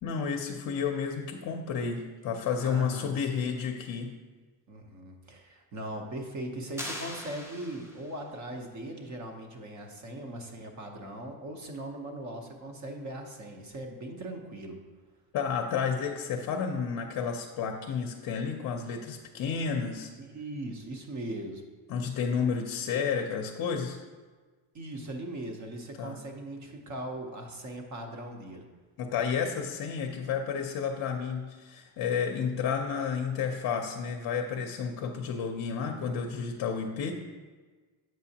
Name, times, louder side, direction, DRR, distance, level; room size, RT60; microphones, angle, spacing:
voice 1, 0.0-4.1 15.3-20.1 21.9-24.0 26.0-26.2 29.0-37.1, left 6 dB, 50° left, 2 dB, 0.6 m, -31 dB
voice 2, 2.6-3.4 4.7-14.8 20.2-21.6 24.7-28.6, right 1 dB, 40° right, 3 dB, 0.8 m, -39 dB
sound 1, 6.8-8.3, left 1 dB, 5° right, 0.4 m, -41 dB
7.6 x 6.1 x 2.8 m, 1.4 s
cardioid pair, 175°, 44 cm